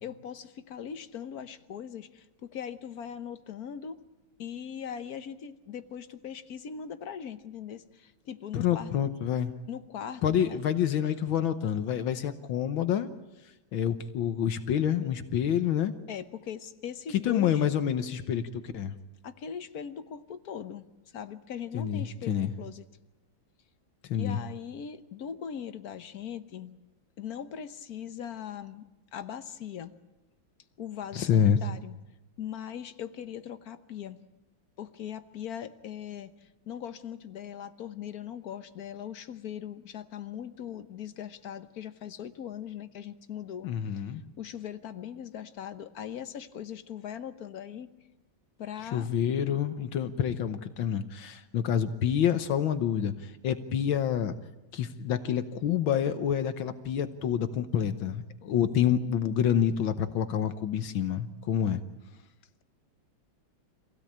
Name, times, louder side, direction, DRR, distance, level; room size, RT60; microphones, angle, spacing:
voice 1, 0.0-4.0 4.4-8.9 9.7-10.6 16.1-17.6 19.2-20.9 21.1-22.8 24.1-26.7 27.2-29.9 30.8-32.0 32.4-34.2 34.8-43.7 44.4-47.9 48.6-49.1, left 8 dB, 55° left, 11 dB, 1.3 m, -40 dB
voice 2, 8.5-9.5 10.2-13.1 13.7-15.9 17.2-18.9 21.7-22.5 24.1-24.4 31.1-31.6 43.6-44.2 48.9-54.4 54.7-61.8, left 9 dB, 75° left, 10 dB, 1.8 m, -28 dB
26.0 x 17.0 x 8.7 m, 1.0 s
omnidirectional pair, 2.2 m